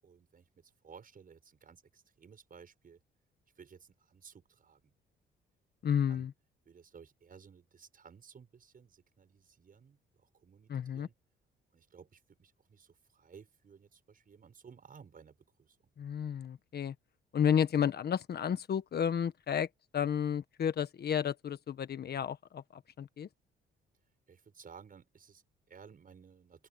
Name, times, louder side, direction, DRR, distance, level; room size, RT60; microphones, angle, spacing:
voice 1, 0.0-3.0 3.6-4.9 5.8-6.3 6.7-11.1 11.7-15.9 24.3-26.7, right 6 dB, 45° right, 7.0 m, -57 dB
voice 2, 5.8-6.3 10.7-11.1 16.0-16.9 17.3-19.7 19.9-23.3, left 8 dB, 55° left, 1.4 m, -32 dB
open air
cardioid pair, 90°, 20 cm